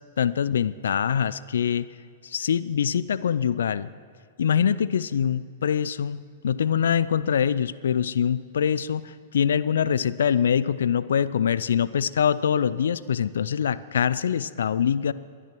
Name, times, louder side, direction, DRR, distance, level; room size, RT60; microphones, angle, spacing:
voice 1, 0.2-1.9 2.2-3.9 4.4-15.1, left 8 dB, 70° left, 17 dB, 0.5 m, -24 dB
22.0 x 10.0 x 6.1 m, 2.2 s
figure-of-eight pair, 105°, 0 cm